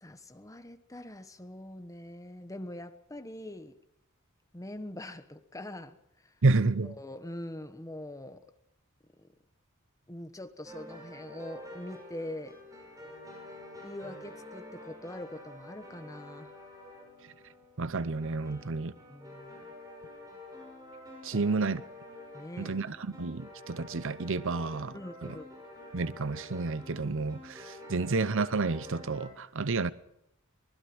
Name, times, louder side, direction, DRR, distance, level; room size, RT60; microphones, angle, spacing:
voice 1, 0.0-3.8 4.5-6.3 6.8-8.4 9.2-9.3 10.1-12.6 13.8-16.5 18.5-18.7 19.1-19.6 21.3-21.4 22.3-22.8 24.9-25.5 27.8-28.1, left 1 dB, 15° left, 1.2 m, -43 dB
voice 2, 6.4-6.9 17.8-18.9 21.2-21.8 22.6-25.0 25.9-29.9, right 3 dB, 65° right, 0.8 m, -30 dB
sound 1, 10.6-29.3, left 1 dB, 15° right, 6.5 m, -48 dB
24.0 x 20.5 x 6.1 m
head